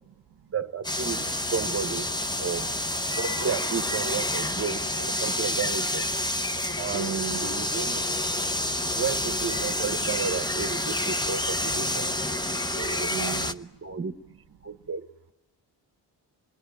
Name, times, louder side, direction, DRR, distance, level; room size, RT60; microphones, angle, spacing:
voice 1, 0.5-2.7 3.2-6.1 6.8-8.0 8.9-12.1 12.7-14.2 14.6-15.1, right 6 dB, 35° right, 10 dB, 1.1 m, -33 dB
sound 1, 0.8-13.5, left 1 dB, 10° left, 0.9 m, -28 dB
voice 2, 6.4-7.5 13.1-13.6 14.6-14.9, right 11 dB, 65° right, 8 dB, 0.8 m, -38 dB
28.0 x 20.5 x 9.1 m, 1.0 s
cardioid pair, 75°, 41 cm